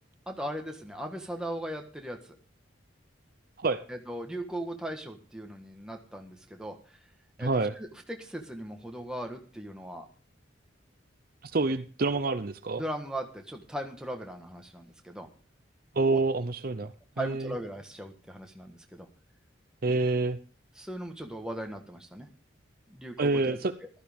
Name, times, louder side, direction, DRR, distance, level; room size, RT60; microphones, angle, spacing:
voice 1, 0.3-2.2 3.9-6.8 7.4-10.1 12.8-15.3 16.1-16.2 17.2-19.1 20.8-22.3 22.9-23.6, right 1 dB, 5° right, 3 dB, 1.4 m, -38 dB
voice 2, 7.4-7.7 11.4-12.8 15.9-17.5 19.8-20.4 23.2-23.7, right 3 dB, 45° right, 11 dB, 0.6 m, -27 dB
15.0 x 13.0 x 3.6 m, 0.39 s
head